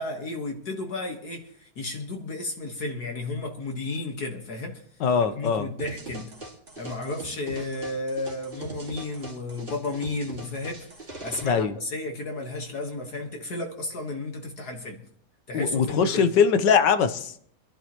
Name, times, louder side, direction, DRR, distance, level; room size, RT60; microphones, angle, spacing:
voice 1, 0.0-4.8 5.3-6.3 6.8-10.9 11.2-15.0 15.5-16.3, left 2 dB, 60° left, 2 dB, 2.0 m, -33 dB
voice 2, 5.0-5.7 11.4-11.7 15.5-17.3, left 6 dB, 80° left, 10 dB, 1.6 m, -21 dB
sound 1, 5.8-11.4, right 2 dB, 30° right, 2.2 m, -41 dB
25.5 x 11.5 x 3.0 m, 0.63 s
omnidirectional pair, 1.9 m